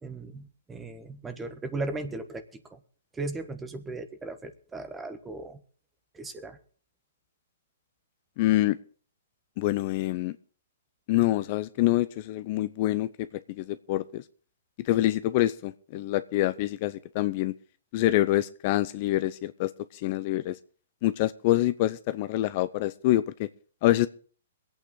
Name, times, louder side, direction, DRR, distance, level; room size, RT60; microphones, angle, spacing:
voice 1, 0.0-2.8 3.1-5.6 6.1-6.6, right 2 dB, 10° right, 10 dB, 1.2 m, -37 dB
voice 2, 8.4-8.8 9.6-10.4 11.1-14.2 14.8-17.5 17.9-19.7 20.0-20.6 21.0-23.5 23.8-24.1, left 15 dB, 45° left, 14 dB, 0.6 m, -26 dB
22.5 x 8.7 x 3.8 m, 0.42 s
hypercardioid pair, 135°, 0 cm